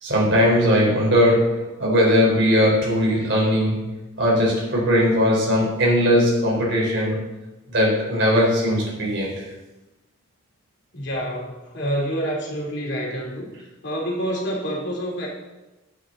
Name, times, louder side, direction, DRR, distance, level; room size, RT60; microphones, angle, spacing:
voice 1, 0.0-3.9 4.2-7.2 7.7-9.5, equal, 60° right, -3 dB, 4.1 m, -19 dB
voice 2, 10.9-13.5 13.8-15.3, equal, 55° left, -2 dB, 3.0 m, -27 dB
12.5 x 9.1 x 3.9 m, 1.1 s
head